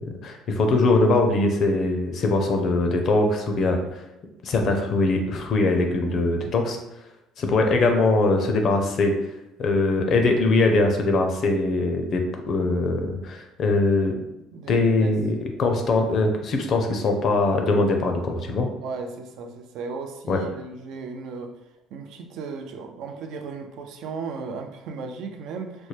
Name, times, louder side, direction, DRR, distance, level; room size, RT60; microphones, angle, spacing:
voice 1, 0.2-3.8 4.4-6.8 7.4-9.1 9.6-14.1 14.7-18.7 20.3-20.4, left 2 dB, 45° left, 4 dB, 0.5 m, -22 dB
voice 2, 14.5-15.2 18.8-21.5 21.9-25.9, right 4 dB, 65° right, 4 dB, 0.5 m, -35 dB
4.2 x 2.1 x 3.2 m, 0.93 s
cardioid pair, 145°, 0 cm